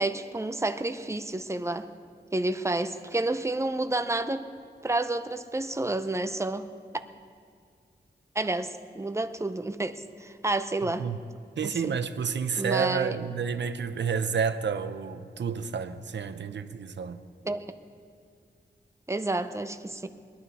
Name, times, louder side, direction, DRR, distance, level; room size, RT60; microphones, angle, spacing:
voice 1, 0.0-1.9 2.3-4.5 4.8-6.6 8.3-11.1 11.8-12.0 12.6-13.2 17.4-17.6 19.1-20.1, right 2 dB, 15° right, 0.7 m, -30 dB
voice 2, 11.6-17.2, right 6 dB, 80° right, 0.7 m, -30 dB
21.5 x 11.5 x 4.2 m
wide cardioid pair, 90°, 18 cm